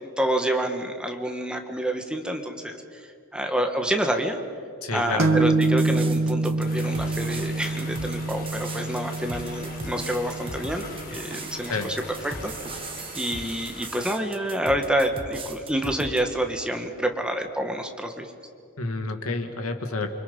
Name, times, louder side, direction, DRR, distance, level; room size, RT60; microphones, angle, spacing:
voice 1, 0.0-2.8 3.3-4.4 4.9-12.0 12.2-12.5 13.1-18.3, right 1 dB, 5° right, 4 dB, 1.6 m, -28 dB
voice 2, 4.8-5.4 11.7-11.9 18.8-20.1, left 3 dB, 90° left, 5 dB, 2.1 m, -29 dB
sound 1, 5.2-12.7, right 2 dB, 70° right, 1.6 m, -27 dB
sound 2, 5.6-16.2, right 3 dB, 25° right, 1.6 m, -39 dB
sound 3, 6.6-14.1, left 2 dB, 45° left, 5.0 m, -42 dB
29.0 x 25.0 x 5.5 m, 2.4 s
head